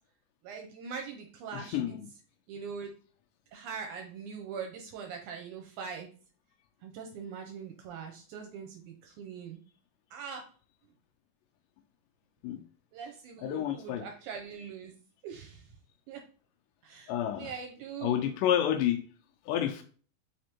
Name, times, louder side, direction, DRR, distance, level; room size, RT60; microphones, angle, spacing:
voice 1, 0.4-2.0 2.5-2.9 3.5-6.1 6.8-9.6 10.1-10.4 12.9-14.9 15.2-15.7 16.1-16.2 16.8-18.3, right 6 dB, 80° right, 2.0 m, -42 dB
voice 2, 13.4-14.0 17.1-17.5 18.0-19.0 19.5-19.8, left 10 dB, 90° left, 2.2 m, -29 dB
5.0 x 3.4 x 2.9 m
omnidirectional pair, 3.7 m